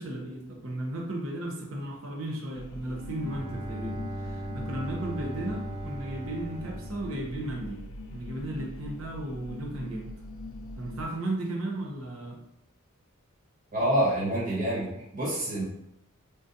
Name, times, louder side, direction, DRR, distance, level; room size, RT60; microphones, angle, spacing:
voice 1, 0.0-7.8 8.1-10.1 10.8-12.4, right 1 dB, 70° right, 0 dB, 0.8 m, -35 dB
sound 1, 2.5-11.1, left 2 dB, 65° left, 0.4 m, -42 dB
Bowed string instrument, 3.0-7.9, right 1 dB, 20° right, 0.4 m, -39 dB
voice 2, 13.7-15.6, right 1 dB, 40° right, -8 dB, 1.3 m, -27 dB
3.8 x 2.4 x 2.7 m, 0.82 s
head